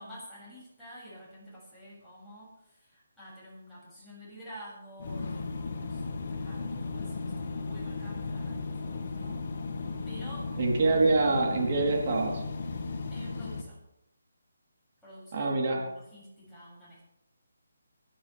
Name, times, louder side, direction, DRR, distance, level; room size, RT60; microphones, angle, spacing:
voice 1, 0.0-9.4 10.1-10.5 10.9-11.0 13.1-13.8 15.0-17.0, equal, ahead, -12 dB, 7.6 m, -49 dB
sound 1, 5.0-13.6, left 4 dB, 50° left, 2.3 m, -35 dB
voice 2, 10.6-12.4 15.3-15.8, right 3 dB, 40° right, -1 dB, 4.0 m, -25 dB
25.0 x 11.0 x 3.6 m, 0.84 s
hypercardioid pair, 165°, 0 cm